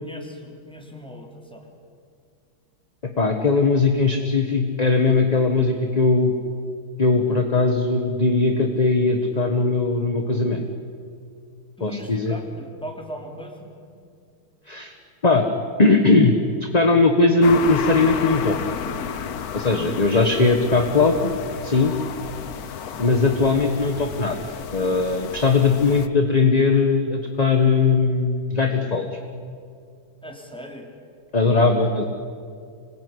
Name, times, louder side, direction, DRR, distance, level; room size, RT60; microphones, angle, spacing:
voice 1, 0.0-1.7 11.8-13.8 30.2-30.9, equal, ahead, 1 dB, 3.3 m, -38 dB
voice 2, 3.2-6.3 7.0-10.7 11.8-12.4 14.7-14.9 15.2-15.5 15.8-16.3 16.7-18.6 19.5-21.3 21.6-21.9 23.0-24.4 24.7-29.0 31.3-32.0, left 3 dB, 25° left, 4 dB, 1.2 m, -19 dB
sound 1, 17.4-26.1, left 8 dB, 55° left, 1.3 m, -32 dB
26.0 x 19.5 x 9.8 m, 2.3 s
omnidirectional pair, 2.3 m